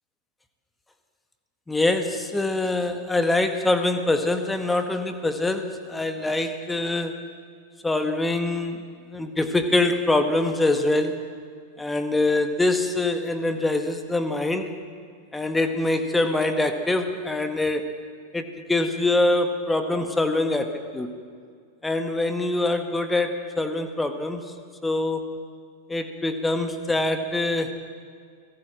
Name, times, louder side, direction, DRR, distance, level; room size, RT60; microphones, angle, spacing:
voice 1, 1.7-7.3 7.8-11.2 11.8-14.7 15.3-17.9 18.3-21.1 21.8-24.5 24.8-25.3 25.9-27.7, left 2 dB, 10° left, 8 dB, 1.7 m, -24 dB
30.0 x 18.0 x 7.6 m, 2.1 s
figure-of-eight pair, 90°, 0 cm